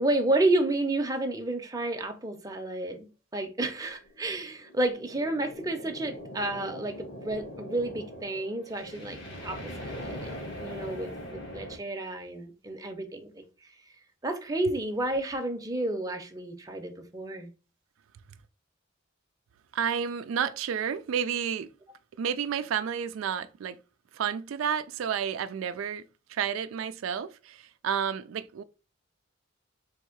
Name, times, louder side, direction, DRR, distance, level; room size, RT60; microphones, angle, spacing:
voice 1, 0.0-13.7 14.2-17.5, right 2 dB, 20° right, 0.7 m, -31 dB
sound 1, 4.1-11.8, equal, 60° left, 1.4 m, -41 dB
voice 2, 19.7-21.7 22.2-23.8 24.1-26.0 26.3-28.6, right 8 dB, 85° right, 0.3 m, -31 dB
3.5 x 2.8 x 4.4 m
head